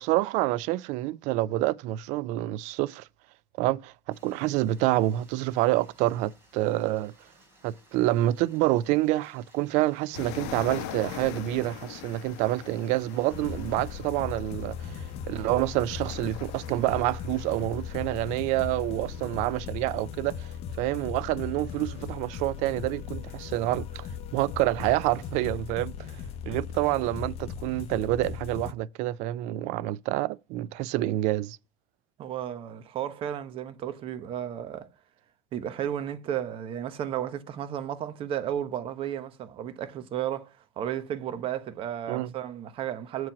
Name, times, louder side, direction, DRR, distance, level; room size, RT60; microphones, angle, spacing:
voice 1, 0.0-3.1 3.6-7.1 7.6-20.5 20.8-24.1 24.3-25.9 26.5-31.6 42.1-42.3, right 16 dB, 60° right, 0.4 m, -27 dB
Stream, 4.1-13.9, right 1 dB, 15° right, 3.9 m, -60 dB
sound 1, 10.1-19.6, left 9 dB, 80° left, 1.1 m, -43 dB
sound 2, 13.3-28.7, left 7 dB, 45° left, 0.9 m, -38 dB
voice 2, 32.2-34.9 35.5-43.3, right 10 dB, 40° right, 1.0 m, -33 dB
7.3 x 4.6 x 5.8 m
cardioid pair, 150°, 14 cm